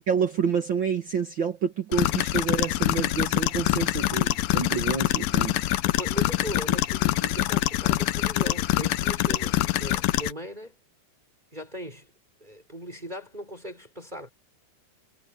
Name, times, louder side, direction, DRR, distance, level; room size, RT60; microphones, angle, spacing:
voice 1, 0.1-5.6, right 6 dB, 65° right, 1.2 m, -28 dB
sound 1, 1.9-10.3, left 16 dB, 75° left, 2.4 m, -25 dB
voice 2, 5.8-10.8 11.5-12.1 12.4-14.3, equal, 10° right, 4.5 m, -38 dB
omnidirectional pair, 4.5 m